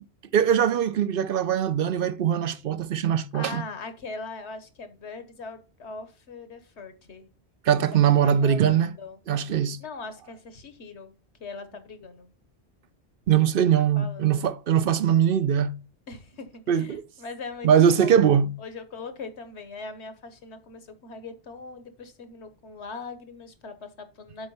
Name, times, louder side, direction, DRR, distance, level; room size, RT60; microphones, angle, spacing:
voice 1, 0.3-3.6 7.7-8.9 9.3-9.8 13.3-15.7 16.7-17.0 17.6-18.5, right 9 dB, 60° right, 0.7 m, -21 dB
voice 2, 3.3-7.3 8.2-9.2 9.8-11.1 11.4-12.3 13.8-14.5 16.1-17.7 18.0-18.2 18.6-24.5, left 4 dB, 75° left, 1.4 m, -41 dB
7.9 x 4.4 x 5.5 m
omnidirectional pair, 1.1 m